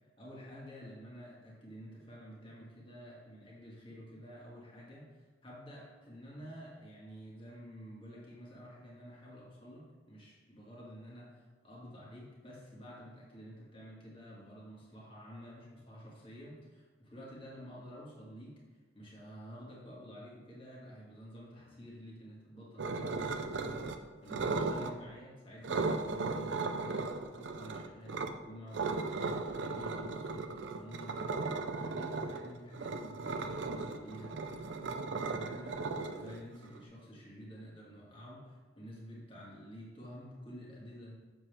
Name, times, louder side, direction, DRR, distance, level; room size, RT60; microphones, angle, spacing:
voice 1, 0.2-18.6 18.9-34.4 35.2-41.1, equal, 25° left, -5 dB, 1.9 m, -50 dB
sound 1, 22.8-24.0 24.3-24.9 25.6-28.3 28.7-36.8, right 3 dB, 65° right, 0.5 m, -36 dB
7.3 x 7.1 x 3.4 m, 1.4 s
head